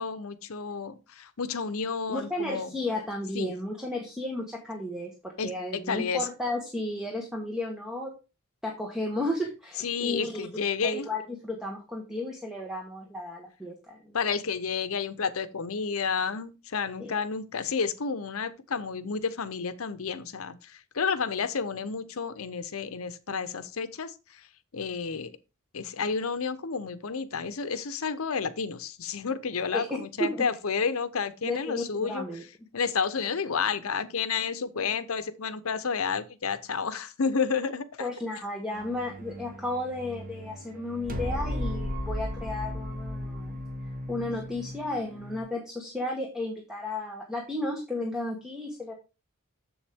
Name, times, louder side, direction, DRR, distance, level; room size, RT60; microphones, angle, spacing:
voice 1, 0.0-2.7 3.3-3.5 5.4-6.3 9.8-11.1 14.1-24.1 24.7-25.3 25.7-32.2 32.7-38.1, left 5 dB, 75° left, 0.7 m, -31 dB
voice 2, 2.1-8.1 8.6-10.5 10.8-14.2 17.0-17.1 29.7-30.4 31.4-32.4 38.0-43.6 44.1-48.9, left 1 dB, 5° right, 1.2 m, -33 dB
sound 1, 38.7-45.4, left 1 dB, 40° right, 1.4 m, -36 dB
7.2 x 7.1 x 3.5 m
head